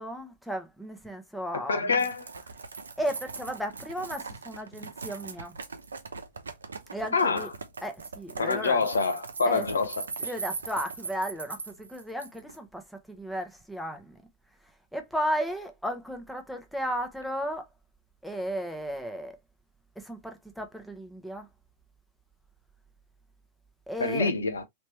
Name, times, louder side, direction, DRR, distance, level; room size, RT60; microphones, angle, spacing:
voice 1, 0.0-2.0 3.0-5.6 6.9-7.5 7.8-8.8 9.4-9.6 10.2-14.2 14.6-17.7 18.2-19.4 20.0-21.5 23.9-24.3, equal, ahead, 1.0 m, -34 dB
voice 2, 1.5-2.3 7.1-7.5 8.4-9.9 24.0-24.6, left 4 dB, 85° left, 0.7 m, -26 dB
sound 1, 2.0-12.6, right 4 dB, 85° right, 0.7 m, -40 dB
3.2 x 3.1 x 3.0 m
hypercardioid pair, 105°, 0 cm